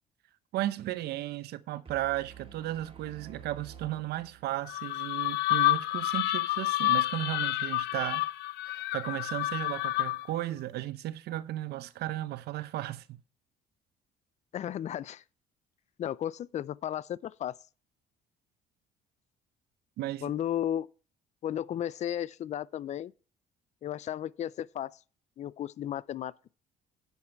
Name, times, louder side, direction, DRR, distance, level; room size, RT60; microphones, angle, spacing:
voice 1, 0.5-8.2 8.7-13.2 20.0-20.3, right 14 dB, 75° right, 0.8 m, -35 dB
sound 1, 1.9-4.9, right 7 dB, 35° right, 2.0 m, -50 dB
sound 2, 4.7-10.4, left 17 dB, 80° left, 0.7 m, -29 dB
voice 2, 14.5-15.2 16.0-17.5 20.2-20.9 21.4-23.1 23.8-25.0 25.4-26.5, left 11 dB, 45° left, 0.4 m, -34 dB
9.6 x 7.3 x 4.5 m
cardioid pair, 110°, 17 cm